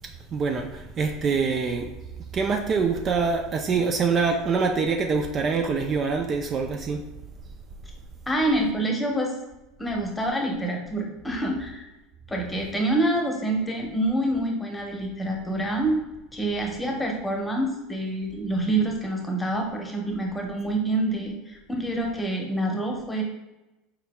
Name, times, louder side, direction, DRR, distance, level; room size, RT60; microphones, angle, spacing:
voice 1, 0.3-1.9 2.3-7.0, right 5 dB, 40° right, 4 dB, 0.4 m, -25 dB
voice 2, 8.3-9.3 9.8-11.9 12.3-15.9 16.3-23.2, right 1 dB, 10° left, 1 dB, 1.0 m, -27 dB
4.3 x 3.9 x 2.3 m, 1.0 s
hypercardioid pair, 90°, 0 cm